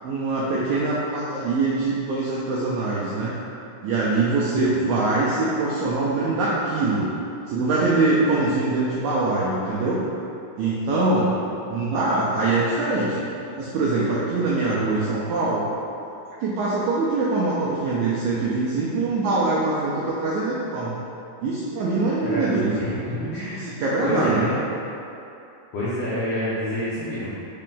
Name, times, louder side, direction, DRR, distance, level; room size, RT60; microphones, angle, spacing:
voice 1, 0.0-3.3 3.8-7.1 7.5-10.0 10.6-11.3 11.7-13.2 13.6-15.6 16.4-21.0 21.4-22.9 23.5-24.5, right 3 dB, 85° right, -6 dB, 1.6 m, -23 dB
voice 2, 22.2-23.6 24.0-24.6 25.7-27.3, equal, 90° left, -10 dB, 1.3 m, -28 dB
5.5 x 2.5 x 3.7 m, 2.8 s
omnidirectional pair, 3.9 m